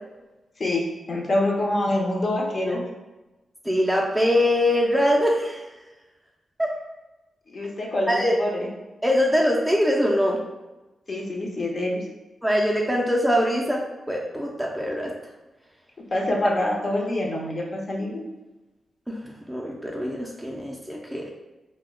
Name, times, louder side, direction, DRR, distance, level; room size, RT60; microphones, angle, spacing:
voice 1, 0.6-2.8 7.5-8.7 11.1-12.0 16.1-18.2, left 1 dB, 40° left, -1 dB, 0.6 m, -26 dB
voice 2, 3.6-5.6 6.6-6.7 8.1-8.4 9.0-10.4 12.4-13.8 14.1-15.1 19.1-19.2 19.5-21.3, equal, 5° right, -2 dB, 0.4 m, -22 dB
2.3 x 2.1 x 3.5 m, 1.1 s
cardioid pair, 90°, 0 cm